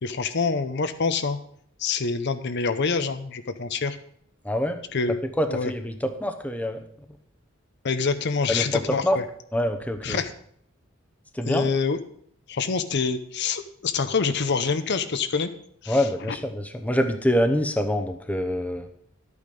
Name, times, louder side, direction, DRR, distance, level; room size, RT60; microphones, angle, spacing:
voice 1, 0.0-1.4 1.8-4.0 4.9-5.7 7.8-9.0 10.0-10.3 11.5-12.0 12.5-15.5 15.8-16.0, left 5 dB, 55° left, 10 dB, 0.7 m, -26 dB
voice 2, 4.4-4.8 5.4-6.8 8.5-9.2 9.5-10.2 11.3-11.7 15.9-18.9, equal, 5° left, 6 dB, 0.9 m, -25 dB
12.0 x 8.5 x 5.3 m, 0.66 s
head